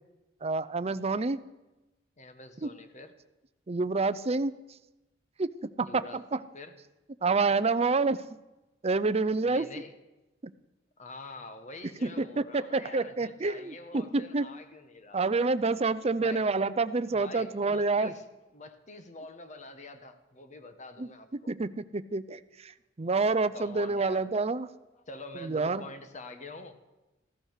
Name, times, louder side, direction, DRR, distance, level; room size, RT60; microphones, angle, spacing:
voice 1, 0.4-1.4 2.6-2.7 3.7-4.5 5.4-5.5 5.8-6.4 7.2-8.2 8.8-9.7 10.4-10.5 12.0-14.5 15.1-18.1 21.0-21.1 21.5-24.7 25.4-25.8, right 3 dB, 35° right, 14 dB, 0.6 m, -28 dB
voice 2, 2.2-3.1 5.8-6.8 9.4-9.9 11.0-15.2 16.2-16.5 17.1-18.2 18.5-21.5 23.3-24.4 24.9-26.8, left 2 dB, 40° left, 9 dB, 1.3 m, -46 dB
15.5 x 13.0 x 6.6 m, 1.0 s
head